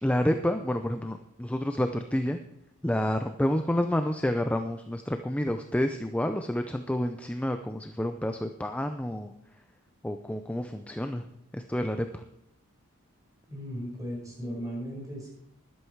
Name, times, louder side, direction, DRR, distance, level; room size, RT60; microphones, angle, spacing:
voice 1, 0.0-2.4 2.8-9.3 10.0-11.2 11.5-12.2, left 1 dB, 5° left, 7 dB, 0.5 m, -29 dB
voice 2, 13.5-15.3, equal, 15° right, -2 dB, 5.5 m, -36 dB
13.5 x 11.5 x 4.6 m, 0.82 s
head